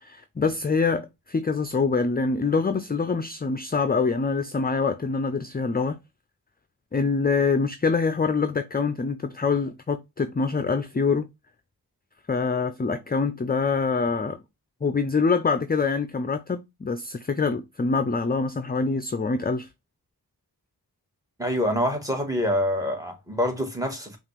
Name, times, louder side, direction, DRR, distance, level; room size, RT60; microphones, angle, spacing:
voice 1, 0.0-6.0 6.9-11.2 12.3-14.4 14.8-19.7, left 4 dB, 25° left, 0.4 m, -25 dB
voice 2, 21.4-24.2, equal, 10° right, 1.6 m, -26 dB
5.6 x 2.5 x 3.3 m
wide cardioid pair, 45°, 38 cm